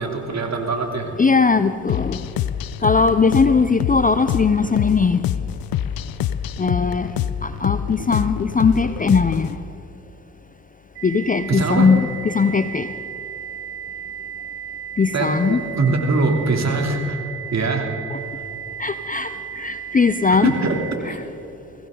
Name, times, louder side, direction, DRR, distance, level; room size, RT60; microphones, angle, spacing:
voice 1, 0.0-1.1 11.5-11.9 15.1-17.2 17.5-17.9 20.3-20.8, right 3 dB, 40° right, 2 dB, 3.2 m, -22 dB
voice 2, 1.2-2.2 2.8-5.2 6.6-7.1 7.6-9.5 11.0-12.9 15.0-15.6 18.8-19.3 19.6-20.5 21.1-21.2, left 5 dB, 20° left, 12 dB, 0.6 m, -19 dB
sound 1, 1.9-9.6, left 10 dB, 60° left, 0.7 m, -26 dB
sound 2, 10.9-20.9, right 9 dB, 75° right, 2.2 m, -34 dB
22.5 x 15.5 x 3.9 m, 2.9 s
hypercardioid pair, 45°, 40 cm